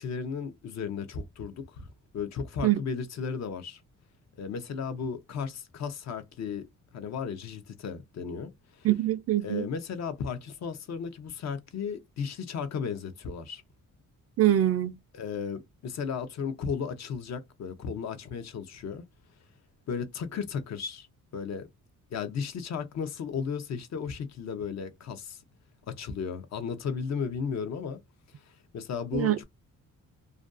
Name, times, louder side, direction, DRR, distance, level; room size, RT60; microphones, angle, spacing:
voice 1, 0.0-3.8 4.4-6.6 6.9-8.9 9.4-13.6 15.1-19.0 19.9-21.1 21.3-21.7 22.1-25.4 25.9-28.0 28.5-29.4, left 6 dB, 55° left, 0.6 m, -35 dB
voice 2, 8.8-9.6 14.4-15.0 29.1-29.4, right 13 dB, 50° right, 0.4 m, -24 dB
2.5 x 2.2 x 2.4 m
cardioid pair, 110°, 32 cm